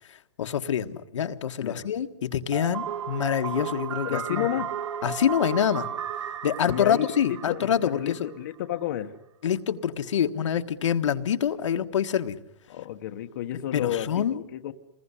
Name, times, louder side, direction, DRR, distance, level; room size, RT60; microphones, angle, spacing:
voice 1, 0.1-4.5 5.0-5.9 6.4-8.3 9.4-12.4 13.7-14.4, left 9 dB, 70° left, 7 dB, 1.5 m, -26 dB
sound 1, 2.5-8.4, right 8 dB, 70° right, 2.3 m, -34 dB
voice 2, 4.0-4.7 6.6-9.1 12.7-14.7, left 12 dB, 35° left, 6 dB, 1.1 m, -31 dB
28.5 x 21.5 x 9.9 m, 0.86 s
hypercardioid pair, 175°, 16 cm